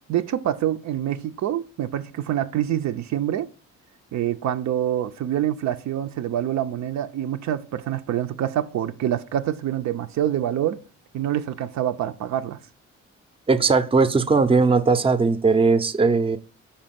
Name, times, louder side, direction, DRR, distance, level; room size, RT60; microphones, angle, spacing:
voice 1, 0.1-3.5 4.1-10.8 11.1-12.6, right 11 dB, 65° right, 0.6 m, -26 dB
voice 2, 13.5-16.4, right 4 dB, 20° right, 0.6 m, -19 dB
5.3 x 4.3 x 5.8 m
cardioid pair, 90°, 30 cm